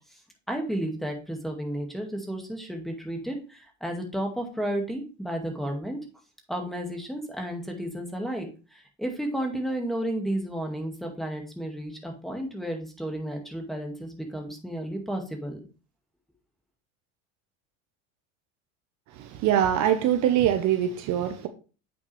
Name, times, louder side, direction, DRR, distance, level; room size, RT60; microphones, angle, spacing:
voice 1, 0.5-6.0 6.5-15.6, right 1 dB, ahead, 2.0 m, -32 dB
voice 2, 19.1-21.5, right 10 dB, 50° right, 1.0 m, -23 dB
8.4 x 6.1 x 3.3 m
supercardioid pair, 120°, 37 cm